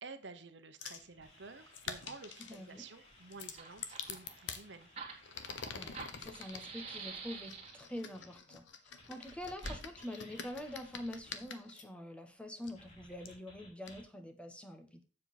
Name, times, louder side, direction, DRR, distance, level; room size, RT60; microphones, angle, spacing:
voice 1, 0.0-4.9, right 4 dB, 70° right, 9 dB, 1.0 m, -51 dB
sound 1, 0.8-1.1 1.7-2.6 3.3-4.6 5.2-6.7 7.5-11.8 12.6-12.7 13.3-13.4 13.9-14.0, left 6 dB, 80° left, 1.0 m, -46 dB
sound 2, 0.9-8.4 9.0-11.4 12.7-14.0, left 1 dB, 35° left, 3.5 m, -60 dB
voice 2, 2.5-2.8 5.7-15.0, left 1 dB, 5° left, 6 dB, 1.1 m, -46 dB
Fire, 3.1-3.2 3.4-8.0 9.6-9.8, right 4 dB, 35° right, 2.0 m, -46 dB
7.5 x 7.1 x 4.2 m, 0.37 s
head